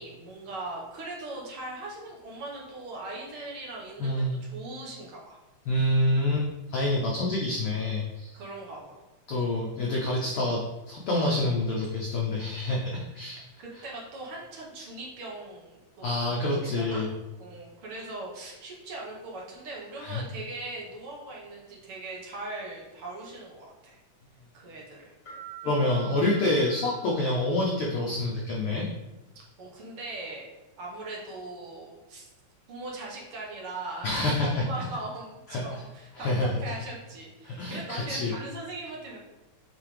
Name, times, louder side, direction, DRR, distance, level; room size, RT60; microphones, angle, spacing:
voice 1, 0.0-5.4 8.3-9.0 13.0-13.1 13.6-17.0 17.4-24.0 24.5-25.1 29.6-30.5 30.8-32.3 32.7-39.2, right 2 dB, 55° right, -3 dB, 1.8 m, -40 dB
voice 2, 4.0-4.4 5.7-8.4 9.3-13.4 16.0-17.1 20.0-20.2 25.6-28.9 34.0-34.7 35.5-35.6 36.2-36.6 37.5-38.3, left 1 dB, 80° left, -2 dB, 1.3 m, -27 dB
sound 1, 25.3-27.9, right 11 dB, 40° left, 2.2 m, -46 dB
8.8 x 3.4 x 3.3 m, 1.0 s
omnidirectional pair, 3.5 m